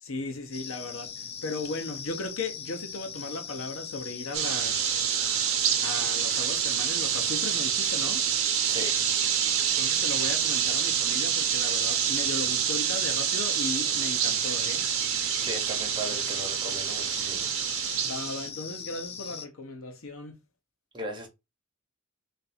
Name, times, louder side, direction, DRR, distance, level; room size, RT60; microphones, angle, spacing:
voice 1, 0.0-5.0 5.8-8.3 9.7-14.9 18.0-20.3, left 2 dB, 70° left, 0.9 m, -36 dB
sound 1, 0.5-19.5, left 7 dB, 30° left, 0.4 m, -40 dB
sound 2, 4.3-18.5, right 9 dB, 70° right, 0.6 m, -27 dB
voice 2, 8.7-9.0 15.4-17.5 20.9-21.3, equal, 20° right, 1.1 m, -37 dB
3.3 x 2.6 x 4.2 m
head